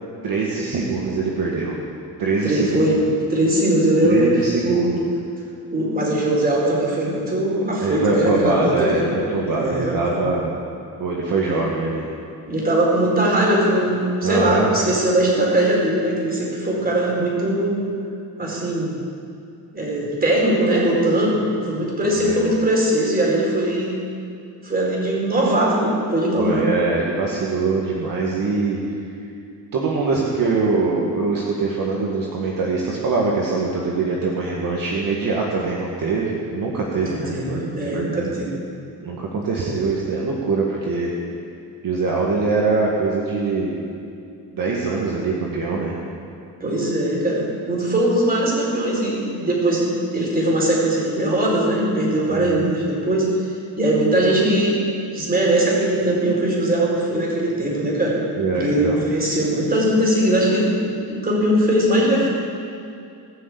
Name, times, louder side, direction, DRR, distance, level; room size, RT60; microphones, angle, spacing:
voice 1, 0.2-1.8 2.2-2.9 4.0-5.0 7.8-9.0 9.3-10.5 11.0-12.1 14.2-14.7 22.0-22.4 26.4-28.8 29.7-37.7 37.9-38.3 39.0-41.1 41.8-43.7 44.5-46.0 52.3-52.7 58.4-59.0, right 3 dB, 50° right, -3 dB, 2.0 m, -23 dB
voice 2, 2.4-3.0 3.3-5.1 5.7-9.1 9.4-10.2 12.5-17.9 18.4-18.9 19.7-24.0 24.6-26.6 37.0-38.6 46.6-53.3 53.8-54.8 55.1-58.2 58.5-62.3, right 1 dB, 20° right, -3 dB, 4.7 m, -20 dB
20.0 x 6.7 x 8.4 m, 2.5 s
cardioid pair, 125°, 42 cm